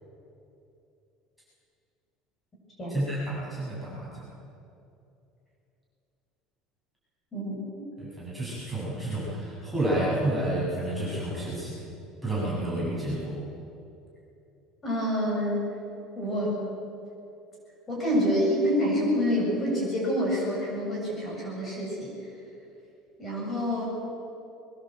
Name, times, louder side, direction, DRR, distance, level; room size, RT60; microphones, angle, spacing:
voice 1, 2.9-4.3 8.0-11.8 12.2-13.3, right 1 dB, ahead, -8 dB, 7.3 m, -30 dB
voice 2, 7.3-7.9 14.8-15.6 16.1-16.6 17.9-22.1 23.2-23.8, equal, 20° left, -4 dB, 7.7 m, -27 dB
22.5 x 20.5 x 8.0 m, 2.7 s
cardioid pair, 160°, 0 cm